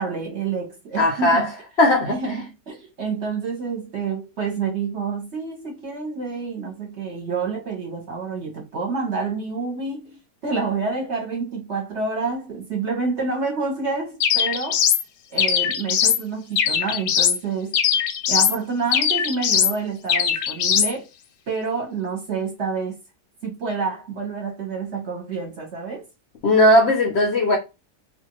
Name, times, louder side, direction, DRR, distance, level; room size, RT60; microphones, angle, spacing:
voice 1, 0.0-1.5 2.0-14.8 15.3-17.8 18.3-21.1 21.5-23.0 23.4-26.0, right 4 dB, 50° right, 1.0 m, -28 dB
voice 2, 1.0-1.5 1.8-2.2 26.4-27.6, left 1 dB, 70° left, 0.6 m, -17 dB
sound 1, 14.2-15.0 15.4-16.2 16.6-17.4 17.7-18.6 18.9-19.8 20.1-20.9, left 8 dB, 85° left, 1.2 m, -20 dB
2.6 x 2.5 x 2.9 m
omnidirectional pair, 1.8 m